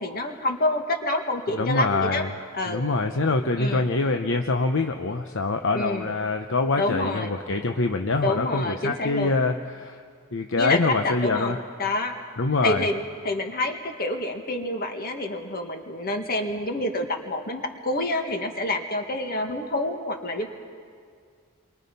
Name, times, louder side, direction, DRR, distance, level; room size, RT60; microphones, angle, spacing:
voice 1, 0.0-2.2 2.5-2.8 3.6-3.9 5.7-6.2 6.8-7.3 8.2-9.4 10.6-12.2 12.6-20.5, left 2 dB, 45° left, 4 dB, 2.0 m, -28 dB
voice 2, 1.5-2.3 2.7-10.0 10.3-11.6 12.4-12.9, left 3 dB, 60° left, 6 dB, 0.8 m, -25 dB
29.5 x 24.0 x 5.4 m, 2.2 s
head